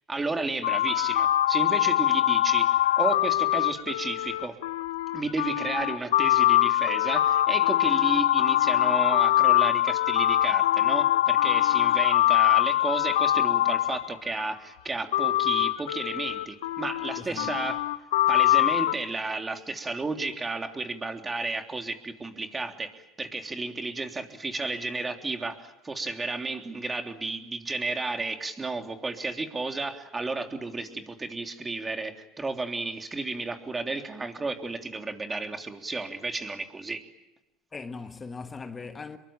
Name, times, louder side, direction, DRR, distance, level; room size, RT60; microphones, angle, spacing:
voice 1, 0.1-4.6 5.1-17.9 18.3-37.0, right 3 dB, 20° right, 3.3 m, -32 dB
sound 1, 0.6-14.4 15.1-18.9, left 14 dB, 90° left, 0.9 m, -23 dB
voice 2, 17.2-17.5 37.7-39.2, left 4 dB, 25° left, 1.5 m, -39 dB
27.0 x 23.0 x 8.9 m
supercardioid pair, 95°, 0 cm